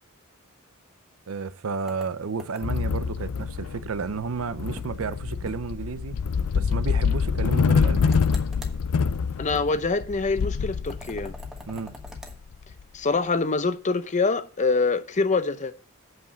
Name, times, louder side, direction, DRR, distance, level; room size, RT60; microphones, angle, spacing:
voice 1, 1.3-6.2 6.5-8.2 11.7-12.0, right 5 dB, 65° right, 0.6 m, -32 dB
sound 1, 1.9-2.9 4.8-5.1 5.5-5.6 5.9-6.0 8.0-8.8 10.9-12.4, equal, 5° right, 1.3 m, -44 dB
sound 2, 2.6-12.8, left 5 dB, 85° left, 0.4 m, -26 dB
voice 2, 9.4-11.3 12.9-15.7, left 4 dB, 35° left, 0.7 m, -25 dB
8.5 x 4.8 x 7.3 m
head